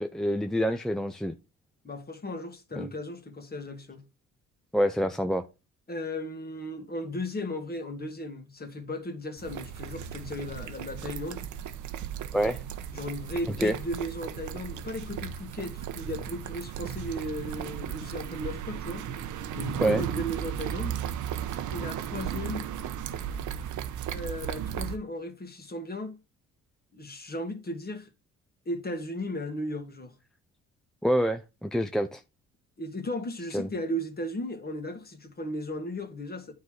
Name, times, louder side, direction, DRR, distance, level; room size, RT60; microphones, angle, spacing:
voice 1, 0.0-1.3 2.8-2.9 4.7-5.4 12.3-12.6 13.6-13.7 19.8-20.0 31.0-32.2 33.5-33.7, equal, ahead, 0.5 m, -26 dB
voice 2, 1.8-4.0 5.9-11.4 12.9-19.1 19.5-21.0 21.7-22.7 24.1-26.2 26.9-28.1 28.7-30.1 32.8-36.5, left 1 dB, 30° left, 1.8 m, -36 dB
sound 1, 9.4-25.0, right 9 dB, 80° right, 0.9 m, -35 dB
9.4 x 4.0 x 4.8 m
cardioid pair, 90°, 30 cm